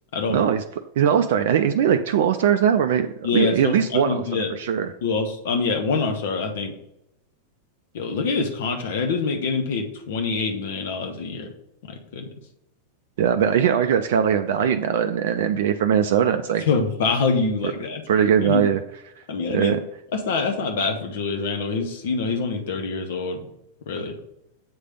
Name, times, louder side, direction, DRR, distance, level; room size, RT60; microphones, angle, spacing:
voice 1, 0.3-0.6 1.0-3.1 3.3-4.9 13.2-16.6 18.1-18.8 19.5-19.8, right 8 dB, 55° right, 7 dB, 0.3 m, -20 dB
voice 2, 3.2-4.5 5.0-6.7 7.9-11.5 11.9-12.3 16.7-18.0 18.4-18.6 19.3-19.8 20.1-23.4 23.9-24.1, left 4 dB, 55° left, 4 dB, 1.1 m, -25 dB
7.9 x 3.3 x 5.1 m, 0.83 s
figure-of-eight pair, 90°, 0 cm